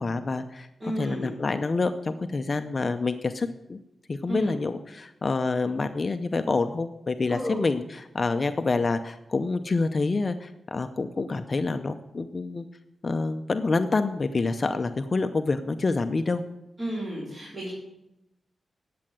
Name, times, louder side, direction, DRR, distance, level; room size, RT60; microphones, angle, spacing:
voice 1, 0.0-0.7 1.0-3.8 4.1-12.7 13.0-16.4, left 3 dB, 35° left, 8 dB, 0.6 m, -27 dB
voice 2, 0.8-1.3 4.3-4.6 7.3-7.6 16.8-17.7, equal, 25° right, -9 dB, 4.3 m, -32 dB
10.5 x 7.6 x 7.5 m, 0.86 s
wide cardioid pair, 120°, 0 cm